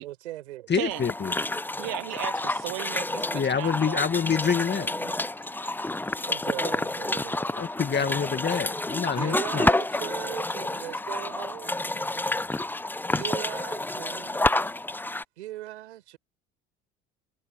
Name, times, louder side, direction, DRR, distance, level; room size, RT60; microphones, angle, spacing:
voice 1, 0.0-0.8 6.3-7.6 8.0-8.6 9.0-12.4 13.0-14.6 15.4-16.2, right 15 dB, 85° right, 4.7 m, -39 dB
voice 2, 0.7-1.3 3.3-4.9 7.6-9.7, left 6 dB, 35° left, 2.1 m, -26 dB
sound 1, 0.9-15.2, left 2 dB, 5° left, 0.6 m, -29 dB
voice 3, 1.8-4.0 5.0-5.1, right 25 dB, 70° right, 1.1 m, -35 dB
hypercardioid pair, 60°, 32 cm